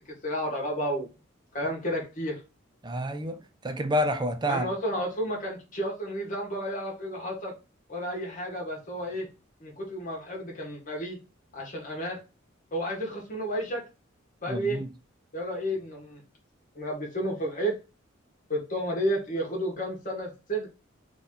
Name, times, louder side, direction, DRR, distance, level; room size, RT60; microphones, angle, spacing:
voice 1, 0.2-1.1 1.5-2.4 4.5-7.5 7.9-9.3 9.6-11.2 11.5-12.2 12.7-13.8 14.4-14.8 15.3-16.2 16.8-17.8 18.5-20.7, equal, 40° left, 1.7 m, -31 dB
voice 2, 2.8-4.7 14.5-14.9, equal, 20° right, 0.5 m, -29 dB
3.9 x 3.1 x 3.9 m
head